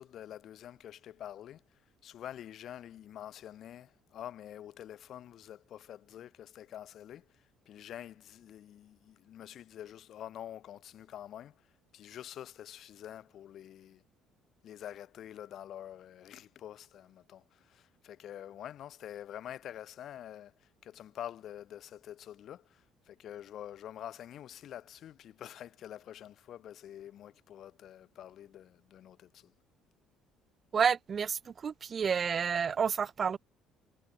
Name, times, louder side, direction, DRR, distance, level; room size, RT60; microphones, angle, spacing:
voice 1, 0.0-1.6 2.0-11.6 11.9-14.0 14.6-29.5, left 11 dB, 60° left, 3.2 m, -47 dB
voice 2, 30.7-33.4, right 6 dB, 45° right, 2.9 m, -30 dB
supercardioid pair, 70°, 0 cm